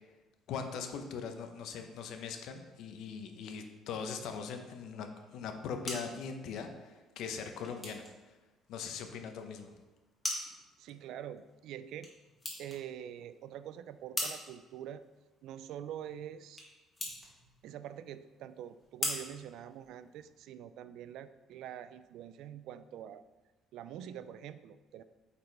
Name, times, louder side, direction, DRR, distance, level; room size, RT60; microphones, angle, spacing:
voice 1, 0.5-8.1 8.7-9.7, left 6 dB, 75° left, 6 dB, 0.7 m, -41 dB
sound 1, 5.4-20.4, left 1 dB, 20° left, 1.6 m, -44 dB
voice 2, 10.8-12.1 12.6-15.0 15.4-16.6 17.6-23.2 23.7-25.0, right 10 dB, 75° right, 13 dB, 0.3 m, -45 dB
8.4 x 4.3 x 3.3 m, 1.2 s
cardioid pair, 120°, 0 cm